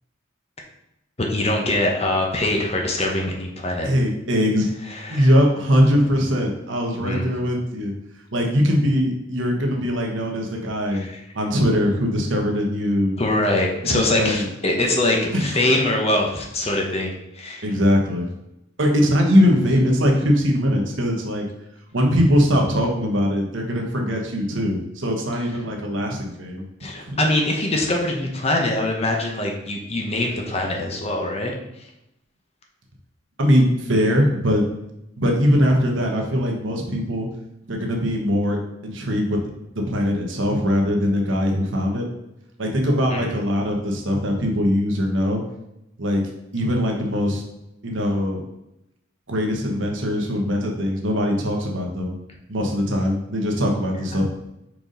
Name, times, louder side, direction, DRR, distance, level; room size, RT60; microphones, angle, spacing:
voice 1, 1.2-3.9 4.9-5.3 7.0-7.3 10.9-11.1 13.2-17.6 26.8-31.5 43.1-43.3, left 1 dB, 30° left, 1 dB, 1.0 m, -23 dB
voice 2, 3.8-4.7 5.1-7.9 8.3-11.0 11.3-13.2 13.8-14.5 15.3-15.6 17.6-18.3 18.8-21.4 21.9-26.6 26.9-27.2 33.4-34.7 35.2-37.3 37.7-39.4 39.7-42.1 42.6-45.4 46.0-46.2 46.5-47.4 47.8-48.4 49.3-52.1 52.5-54.2, equal, 65° right, 1 dB, 1.2 m, -21 dB
5.2 x 4.7 x 3.9 m, 0.86 s
head